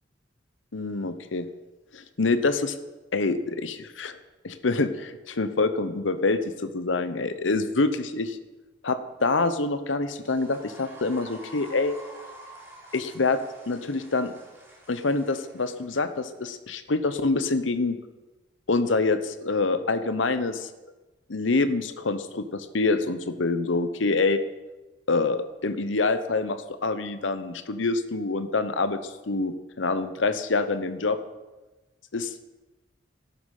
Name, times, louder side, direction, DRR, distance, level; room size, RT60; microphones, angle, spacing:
voice 1, 0.7-1.5 1.9-2.8 3.1-4.2 4.4-8.4 8.8-12.0 12.9-13.4 13.7-14.3 14.9-18.0 18.7-20.7 21.3-24.4 25.1-31.2 32.1-32.3, left 3 dB, 85° left, 12 dB, 0.9 m, -26 dB
sound 1, 10.1-16.4, right 1 dB, 15° right, 3.3 m, -48 dB
12.0 x 9.4 x 6.5 m, 1.1 s
head